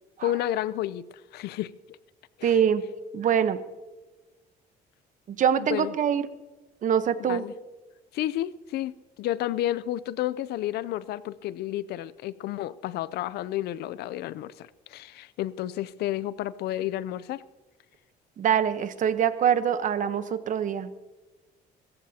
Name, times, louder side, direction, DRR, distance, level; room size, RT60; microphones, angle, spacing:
voice 1, 0.2-1.0 1.3-1.7 2.4-2.6 5.7-5.9 7.2-7.5 8.1-17.4, left 13 dB, 75° left, 18 dB, 0.5 m, -31 dB
voice 2, 2.4-2.8 3.1-3.6 5.3-6.2 6.8-7.5 18.4-20.9, right 8 dB, 50° right, 12 dB, 1.0 m, -24 dB
25.0 x 14.5 x 2.8 m, 1.2 s
cardioid pair, 110°, 17 cm